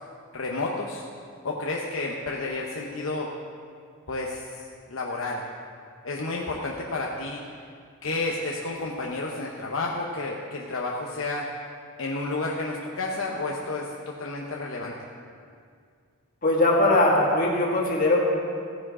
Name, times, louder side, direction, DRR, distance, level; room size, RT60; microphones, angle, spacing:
voice 1, 0.3-1.0 1.4-3.3 4.1-5.4 6.0-7.4 8.0-11.5 12.0-14.9, left 2 dB, 65° left, -2 dB, 0.8 m, -31 dB
voice 2, 16.4-18.2, left 1 dB, 40° left, -3 dB, 2.1 m, -20 dB
15.5 x 9.6 x 3.7 m, 2.2 s
head